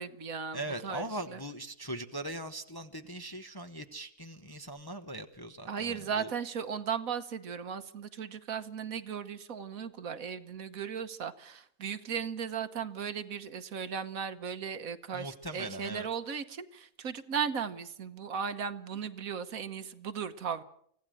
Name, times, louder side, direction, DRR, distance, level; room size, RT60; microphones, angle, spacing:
voice 1, 0.0-1.4 5.7-20.6, right 7 dB, 65° right, 11 dB, 1.4 m, -36 dB
voice 2, 0.5-6.3 15.1-16.1, right 1 dB, 20° left, 7 dB, 0.9 m, -40 dB
25.0 x 16.5 x 7.7 m, 0.69 s
omnidirectional pair, 1.6 m